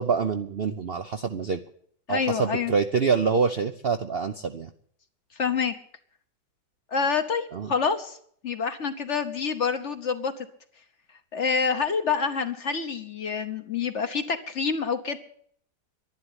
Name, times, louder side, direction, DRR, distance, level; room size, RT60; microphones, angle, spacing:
voice 1, 0.0-1.6 2.1-4.7 7.5-7.7, right 5 dB, 55° right, 7 dB, 0.7 m, -26 dB
voice 2, 2.1-2.7 5.4-5.7 6.9-8.2 8.4-10.5 11.3-15.2, left 5 dB, 50° left, 8 dB, 1.1 m, -27 dB
11.5 x 11.5 x 9.7 m, 0.62 s
omnidirectional pair, 1.8 m